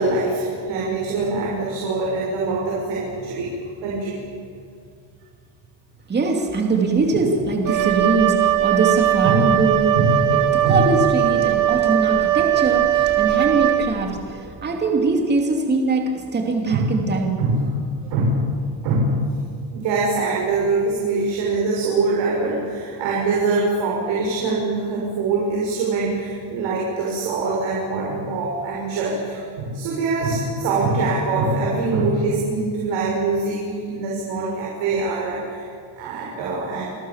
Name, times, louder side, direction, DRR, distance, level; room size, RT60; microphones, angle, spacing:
voice 1, 0.0-3.5 3.8-4.2 9.2-9.5 9.9-10.4 10.6-10.8 16.7-16.9 17.4-17.8 18.1-18.4 18.8-19.3 19.7-36.9, right 3 dB, 75° right, -4 dB, 6.5 m, -23 dB
voice 2, 6.1-10.0 10.3-17.4, right 3 dB, 20° right, 2 dB, 2.7 m, -22 dB
Wind instrument woodwind instrument, 7.6-14.2, right 13 dB, 45° right, 1.9 m, -19 dB
29.5 x 21.0 x 7.3 m, 2.3 s
cardioid pair, 165°, 45 cm